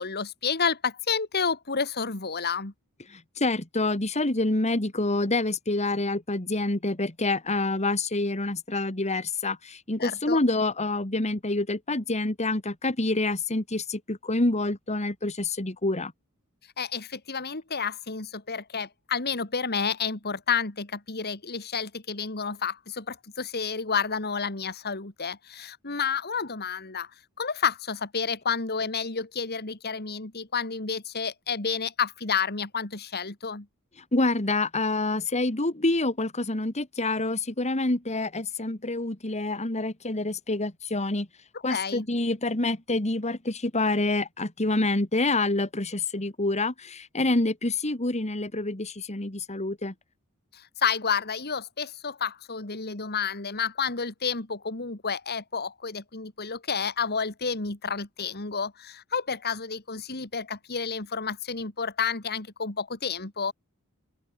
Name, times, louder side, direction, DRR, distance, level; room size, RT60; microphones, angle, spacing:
voice 1, 0.0-2.7 10.0-10.4 16.8-27.1 27.4-33.7 41.7-42.1 50.5-63.5, left 6 dB, 45° left, 2.5 m, -30 dB
voice 2, 3.1-16.1 34.1-41.3 41.6-49.9, left 2 dB, 30° left, 2.1 m, -27 dB
open air
head